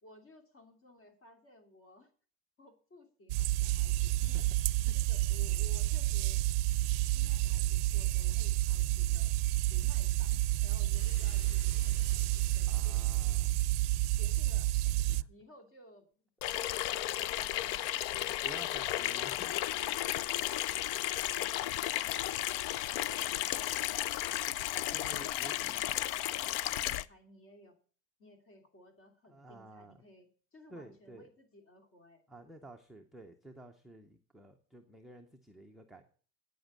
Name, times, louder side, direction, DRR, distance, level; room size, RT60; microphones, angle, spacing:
voice 1, 0.0-2.1 2.6-4.5 4.9-6.4 7.1-9.3 9.7-13.0 14.1-16.2 16.6-18.3 20.3-20.7 20.9-22.7 25.4-26.2 26.4-27.8 28.2-32.2, left 1 dB, 30° left, 5 dB, 2.8 m, -57 dB
sound 1, 3.3-15.2, right 17 dB, 80° right, 0.6 m, -30 dB
voice 2, 4.2-4.5 4.9-5.0 12.7-13.6 15.1-15.3 18.4-19.6 24.9-25.9 29.3-30.0 30.7-31.3 32.3-36.0, right 1 dB, ahead, 2 dB, 0.6 m, -52 dB
sound 2, 10.9-13.4, left 5 dB, 85° left, 2.5 m, -56 dB
Water tap faucet / Sink (filling or washing), 16.4-27.0, left 14 dB, 45° left, 0.4 m, -34 dB
9.2 x 7.8 x 7.3 m, 0.42 s
supercardioid pair, 140°, 45 cm